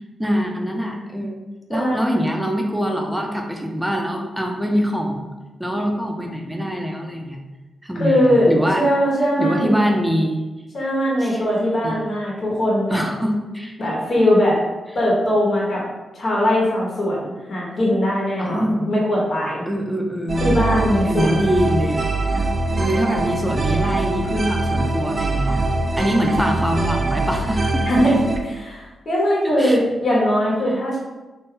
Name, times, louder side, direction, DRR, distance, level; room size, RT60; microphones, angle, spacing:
voice 1, 0.2-1.4 1.7-5.3 5.6-7.4 7.8-8.8 9.4-10.4 11.2-11.4 11.8-12.0 12.9-13.7 18.4-18.9 19.7-20.6 21.0-22.1 22.8-25.6 26.0-27.9 29.6-29.8, equal, 5° right, 1 dB, 0.7 m, -23 dB
voice 2, 1.7-2.2 7.9-9.8 10.7-13.0 13.8-14.6 14.9-15.8 16.1-19.6 20.4-21.5 27.8-31.0, equal, 60° left, -4 dB, 1.2 m, -20 dB
sound 1, 20.3-28.4, right 2 dB, 50° right, 0.5 m, -23 dB
3.3 x 2.7 x 3.8 m, 1.1 s
supercardioid pair, 55°, 0 cm